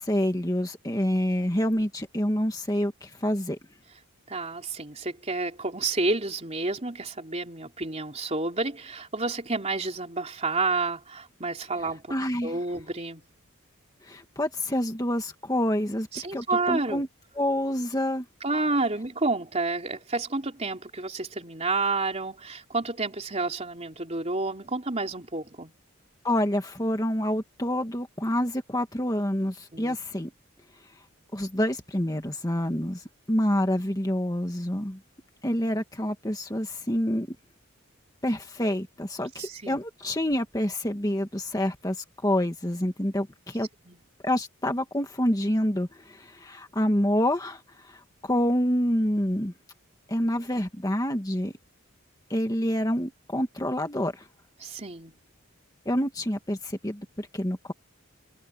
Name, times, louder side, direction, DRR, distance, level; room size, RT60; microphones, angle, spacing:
voice 1, 0.0-3.6 12.1-12.6 14.0-17.1 17.4-18.3 26.2-30.3 31.3-35.0 35.4-37.3 38.2-43.7 44.2-49.5 50.1-51.5 52.3-54.3 55.9-57.7, equal, 15° left, 1.9 m, -27 dB
voice 2, 4.3-12.1 12.4-13.2 16.1-17.0 18.4-25.7 29.7-30.0 39.4-39.8 43.9-44.0 54.6-55.1, right 3 dB, 30° right, 3.7 m, -30 dB
head